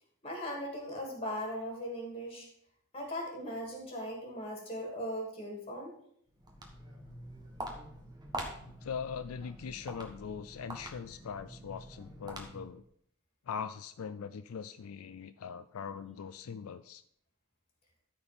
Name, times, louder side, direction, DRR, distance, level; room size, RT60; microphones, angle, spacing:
voice 1, 0.2-2.5 2.9-5.9, equal, 30° left, 0 dB, 2.8 m, -39 dB
Walk footsteps, 6.3-12.8, right 1 dB, 20° right, 1.4 m, -45 dB
voice 2, 8.6-12.8 13.5-17.0, left 6 dB, 85° left, 12 dB, 0.4 m, -41 dB
13.0 x 4.5 x 5.2 m, 0.68 s
head